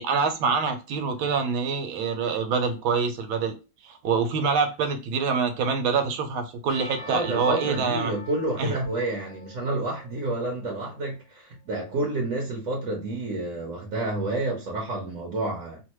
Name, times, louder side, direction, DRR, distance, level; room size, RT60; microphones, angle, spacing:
voice 1, 0.0-3.5 3.8-8.1 8.6-8.8, right 5 dB, 80° right, 1.6 m, -25 dB
Percussion / Church bell, 6.7-11.0, left 2 dB, 30° left, 0.8 m, -44 dB
voice 2, 7.0-15.8, right 2 dB, 50° right, 1.1 m, -29 dB
3.4 x 2.5 x 3.0 m
omnidirectional pair, 2.2 m